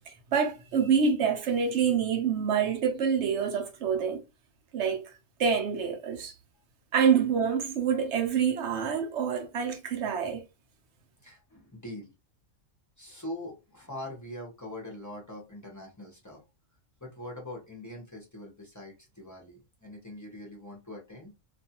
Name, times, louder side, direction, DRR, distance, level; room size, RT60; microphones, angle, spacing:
voice 1, 0.1-4.2 4.7-5.0 5.4-6.3 6.9-10.4, right 6 dB, 60° right, 0.9 m, -26 dB
voice 2, 11.2-12.1 13.0-16.4 17.0-21.3, left 1 dB, 20° left, 0.6 m, -43 dB
2.5 x 2.3 x 2.8 m
omnidirectional pair, 1.4 m